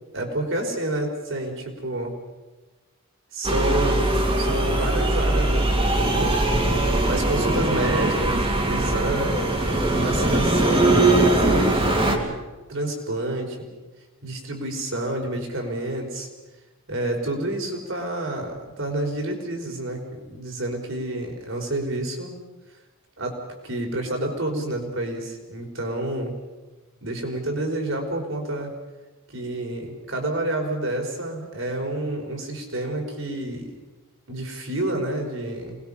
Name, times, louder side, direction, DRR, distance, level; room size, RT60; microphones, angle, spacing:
voice 1, 0.1-2.2 3.3-6.5 7.0-9.5 10.0-11.1 11.3-12.3 12.7-13.7 14.2-16.3 16.9-22.3 23.2-26.3 27.0-28.7 29.3-33.7 34.3-35.8, right 1 dB, 60° right, 2 dB, 4.9 m, -29 dB
sound 1, 3.4-12.2, right 2 dB, 25° right, 2.9 m, -21 dB
27.5 x 20.5 x 5.7 m, 1.2 s
head